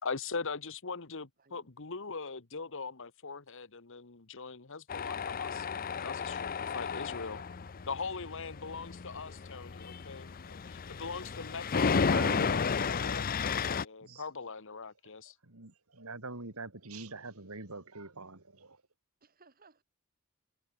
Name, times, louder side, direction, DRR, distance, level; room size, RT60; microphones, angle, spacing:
voice 1, 0.0-6.5 6.7-7.4 7.9-15.3, left 4 dB, 60° left, 1.4 m, -41 dB
Tools, 4.9-13.8, left 5 dB, 40° left, 0.6 m, -33 dB
voice 2, 11.7-12.5 14.0-14.2 15.4-18.8, right 3 dB, 85° right, 3.1 m, -44 dB
voice 3, 19.2-19.8, right 3 dB, 45° right, 3.3 m, -62 dB
head